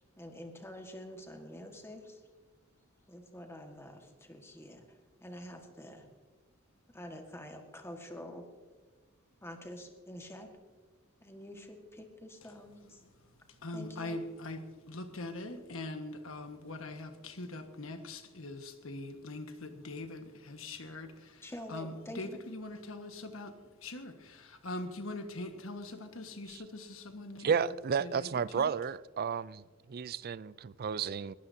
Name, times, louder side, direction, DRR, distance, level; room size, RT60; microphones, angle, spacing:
voice 1, 0.2-2.2 3.1-4.8 5.2-6.1 6.9-8.4 9.4-10.5 11.2-13.0 13.7-14.2 21.4-22.4, left 1 dB, 10° left, 1.6 m, -47 dB
voice 2, 13.5-27.7 28.0-28.3 28.5-28.7, left 2 dB, 75° left, 1.5 m, -42 dB
voice 3, 27.4-29.6 29.9-31.3, right 6 dB, 50° right, 0.4 m, -32 dB
20.5 x 15.5 x 2.8 m
head